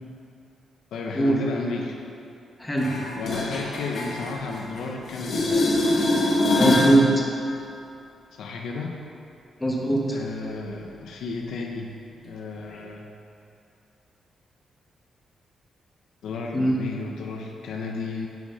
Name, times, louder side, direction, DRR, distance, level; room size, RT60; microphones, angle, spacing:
voice 1, 0.9-2.0 3.2-5.9 8.3-9.0 10.1-11.9 12.2-13.1 16.2-18.3, left 4 dB, 85° left, 1 dB, 0.9 m, -33 dB
sound 1, 2.8-4.8 5.1-7.0 12.8-12.9, left 1 dB, 50° left, 1.6 m, -24 dB
voice 2, 6.5-7.2 9.6-10.2 16.5-16.8, right 1 dB, 10° left, -2 dB, 1.4 m, -21 dB
10.5 x 6.3 x 5.6 m, 2.6 s
wide cardioid pair, 155°, 0 cm